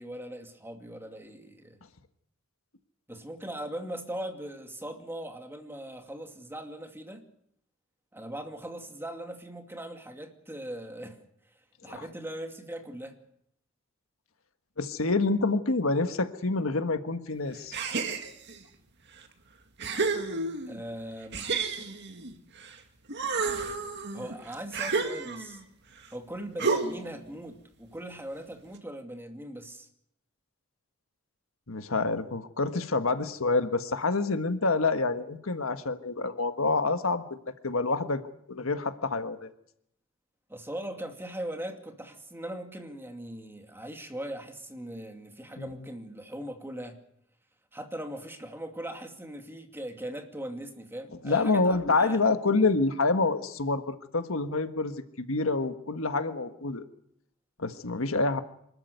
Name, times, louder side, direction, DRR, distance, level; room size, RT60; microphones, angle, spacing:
voice 1, 0.0-1.8 3.1-7.2 8.1-11.2 11.8-13.2 20.7-21.5 24.1-25.6 26.1-29.9 40.5-47.0 47.7-52.2, right 1 dB, 10° right, 4 dB, 2.4 m, -40 dB
voice 2, 14.8-17.7 31.7-37.2 37.6-38.2 38.5-39.5 45.6-45.7 51.2-56.8 57.6-58.4, left 3 dB, 80° left, 9 dB, 1.5 m, -27 dB
sound 1, 17.7-18.6 19.2-19.3 19.8-20.8 21.3-22.8 23.1-25.6 26.6-27.2, right 4 dB, 55° right, 2.3 m, -31 dB
25.5 x 13.5 x 9.4 m, 0.73 s
head